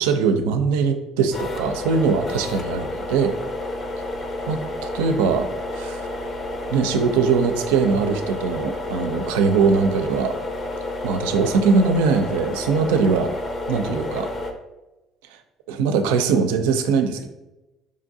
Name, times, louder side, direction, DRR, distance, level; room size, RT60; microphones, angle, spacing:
voice 1, 0.0-3.4 4.5-5.5 5.7-6.1 6.7-10.3 11.0-13.3 13.7-14.3 15.7-17.3, right 5 dB, 80° right, 7 dB, 0.4 m, -21 dB
sound 1, 1.3-14.5, left 2 dB, 40° left, 0.6 m, -30 dB
5.0 x 2.5 x 2.6 m, 1.0 s
hypercardioid pair, 65°, 0 cm